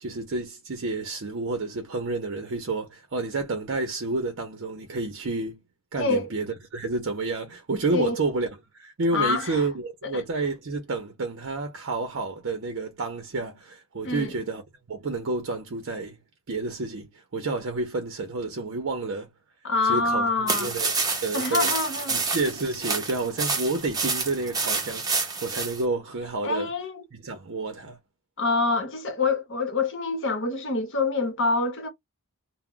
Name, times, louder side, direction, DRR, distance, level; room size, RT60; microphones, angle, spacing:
voice 1, 0.0-5.6 5.9-8.5 8.7-14.6 14.9-16.2 16.5-19.3 19.8-21.7 22.1-26.7 27.1-28.0, right 3 dB, 60° right, 0.6 m, -30 dB
voice 2, 6.0-6.3 7.9-8.2 9.1-9.7 10.0-10.2 14.0-14.3 19.6-20.7 21.3-22.2 26.4-27.0 28.4-31.9, left 3 dB, 55° left, 0.9 m, -26 dB
sound 1, 20.5-25.8, right 4 dB, 15° right, 0.7 m, -28 dB
2.2 x 2.1 x 3.6 m
head